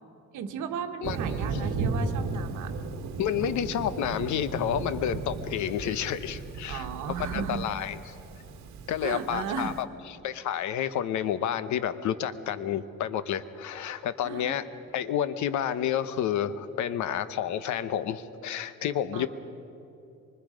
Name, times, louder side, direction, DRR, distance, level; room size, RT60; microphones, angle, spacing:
voice 1, 0.3-2.7 6.6-7.7 9.0-9.8 14.2-14.6 19.1-19.3, right 7 dB, 85° right, 6 dB, 1.5 m, -35 dB
Thunder, 1.0-9.8, right 4 dB, 70° right, 1.9 m, -35 dB
voice 2, 3.2-6.9 7.3-8.0 8.9-9.9 10.2-14.6 14.9-19.3, left 9 dB, 75° left, 12 dB, 1.0 m, -30 dB
24.5 x 24.0 x 5.2 m, 2.8 s
cardioid pair, 150°, 29 cm